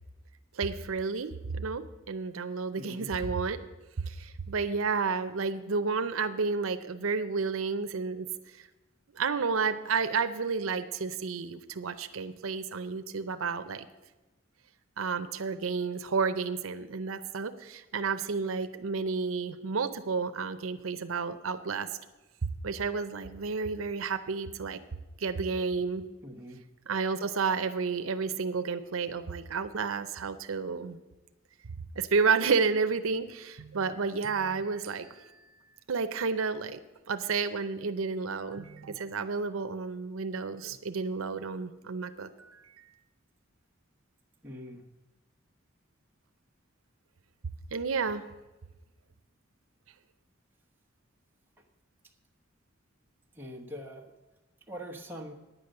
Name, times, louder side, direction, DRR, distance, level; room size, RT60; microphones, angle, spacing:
voice 1, 0.5-3.6 4.0-8.3 8.6-8.7 9.1-13.9 15.0-21.9 22.4-24.8 25.2-26.0 26.9-31.0 32.0-36.8 37.1-42.9 47.7-48.3, right 5 dB, 85° right, 10 dB, 0.6 m, -31 dB
voice 2, 2.8-3.1 26.2-26.6 44.4-44.8 53.3-54.1 54.7-55.3, equal, 10° right, 0 dB, 1.1 m, -43 dB
10.0 x 8.5 x 6.6 m, 1.1 s
head